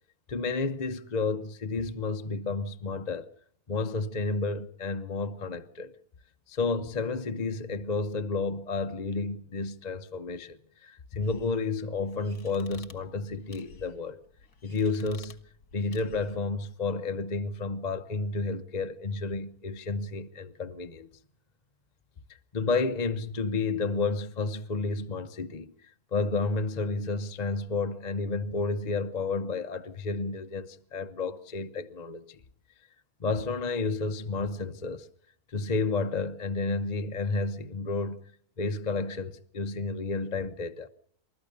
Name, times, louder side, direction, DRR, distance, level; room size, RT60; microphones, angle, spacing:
voice 1, 0.3-3.3 3.7-5.9 6.5-14.2 14.6-15.4 15.7-21.1 22.5-25.7 26.1-32.2 33.2-35.1 35.5-38.2 38.6-40.9, left 3 dB, 35° left, 0.8 m, -31 dB
sound 1, 11.2-16.5, left 4 dB, 75° left, 2.3 m, -54 dB
29.5 x 13.5 x 6.7 m
omnidirectional pair, 1.6 m